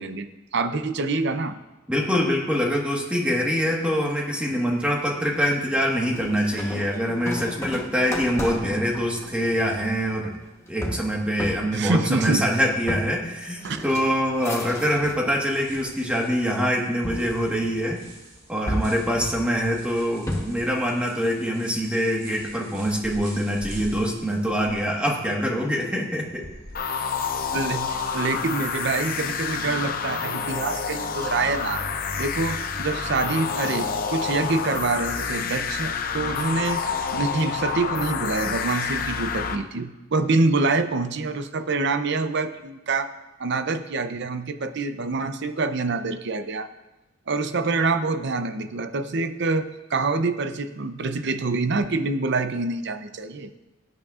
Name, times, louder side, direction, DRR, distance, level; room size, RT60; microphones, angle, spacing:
voice 1, 0.0-1.6 11.7-12.5 13.6-13.8 27.5-31.8 32.2-36.8 37.1-43.1 43.4-46.7 47.3-53.5, right 3 dB, 60° right, 9 dB, 0.6 m, -26 dB
voice 2, 1.9-10.4 10.7-18.0 18.5-26.4, equal, 5° right, -1 dB, 1.4 m, -24 dB
sound 1, 6.1-15.3 15.7-16.3 17.0-18.1 18.7-20.7, left 1 dB, 15° left, 1.1 m, -34 dB
sound 2, 15.5-26.8, right 1 dB, 40° right, 2.9 m, -45 dB
sound 3, 26.7-39.6, left 6 dB, 45° left, 0.6 m, -28 dB
17.0 x 9.4 x 2.4 m, 1.1 s
head